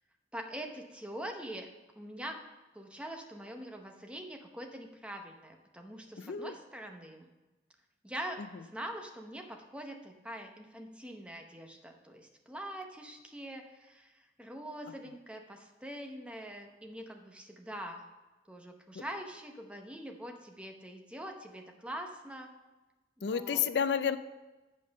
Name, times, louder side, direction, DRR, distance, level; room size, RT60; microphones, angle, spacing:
voice 1, 0.3-1.7 2.0-2.4 2.7-7.3 8.0-18.0 18.5-22.5 23.2-23.6, right 1 dB, 5° right, 3 dB, 0.8 m, -44 dB
voice 2, 6.2-6.5 19.0-19.1 23.2-24.2, left 7 dB, 80° left, 13 dB, 0.4 m, -30 dB
8.3 x 5.4 x 6.4 m, 1.1 s
head